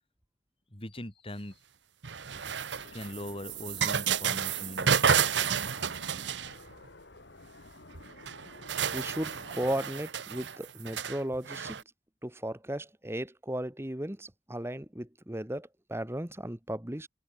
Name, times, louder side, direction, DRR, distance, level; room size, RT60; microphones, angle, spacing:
voice 1, 0.7-1.6 2.9-5.3, left 1 dB, 30° left, 3.6 m, -41 dB
sound 1, 2.0-6.8 7.9-8.0 8.3-11.8, right 7 dB, 85° right, 1.0 m, -31 dB
sound 2, 2.7-9.8, left 2 dB, 80° left, 2.3 m, -51 dB
voice 2, 8.9-11.8 12.2-17.1, right 1 dB, 15° right, 1.6 m, -35 dB
open air
head